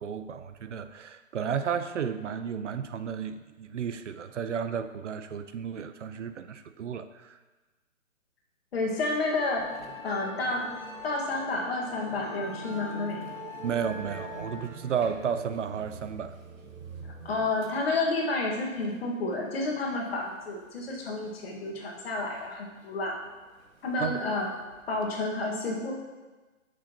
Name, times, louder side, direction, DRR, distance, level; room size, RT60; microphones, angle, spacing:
voice 1, 0.0-7.3 13.6-16.3 24.0-24.2, right 7 dB, 60° right, 10 dB, 0.6 m, -33 dB
voice 2, 8.7-9.6 10.0-10.7 11.0-13.3 17.2-23.2 23.8-24.5 24.9-25.9, left 2 dB, 45° left, -1 dB, 1.7 m, -30 dB
Musical instrument, 9.6-25.1, equal, 90° right, 1.5 m, -44 dB
10.0 x 6.3 x 2.9 m, 1.2 s
hypercardioid pair, 155°, 40 cm